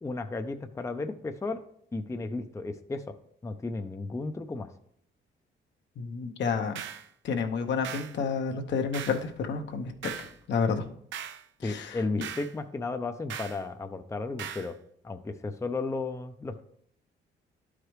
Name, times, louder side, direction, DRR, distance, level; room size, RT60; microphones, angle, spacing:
voice 1, 0.0-1.6 1.9-3.2 3.4-4.7 11.6-14.8 15.0-16.6, left 3 dB, 15° left, 7 dB, 0.5 m, -34 dB
voice 2, 6.0-6.8 7.2-10.9 11.6-12.0, left 5 dB, 65° left, 5 dB, 0.9 m, -30 dB
sound 1, 6.7-7.1 7.8-8.2 8.9-9.3 10.0-10.3 11.1-11.4 12.2-12.5 13.3-13.6 14.4-14.7, right 8 dB, 75° right, 0.6 m, -39 dB
11.5 x 4.9 x 3.2 m, 0.67 s
cardioid pair, 90°, 20 cm